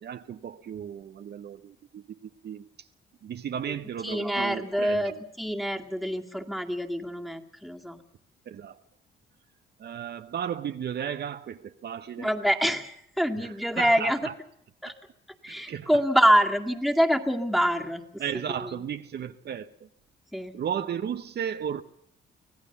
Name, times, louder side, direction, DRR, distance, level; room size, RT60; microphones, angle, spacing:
voice 1, 0.0-2.9 3.2-5.2 8.5-8.8 9.8-12.3 13.3-14.3 14.8-14.9 15.7-15.9 18.2-19.7 20.5-21.8, right 8 dB, 55° right, 9 dB, 1.0 m, -35 dB
voice 2, 4.0-5.1 5.4-8.0 12.2-14.2 14.8-14.9 15.4-18.0 18.6-18.7 20.3-20.5, equal, ahead, 3 dB, 2.2 m, -25 dB
24.5 x 17.0 x 7.0 m, 0.71 s
cardioid pair, 90°, 20 cm